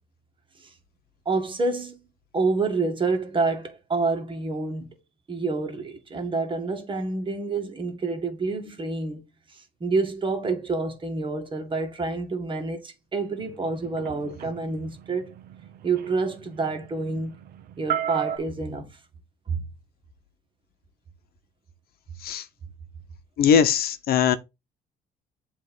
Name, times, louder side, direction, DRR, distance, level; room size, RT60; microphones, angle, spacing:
voice 1, 1.3-2.0 2.3-4.9 5.3-9.2 9.5-15.3 15.8-17.3 17.8-18.9 19.5-19.6, right 3 dB, 30° right, 2.0 m, -28 dB
sound 1, 13.4-18.4, right 10 dB, 65° right, 0.8 m, -34 dB
voice 2, 23.4-24.4, left 7 dB, 65° left, 0.9 m, -20 dB
7.6 x 3.2 x 5.5 m
cardioid pair, 110°, 17 cm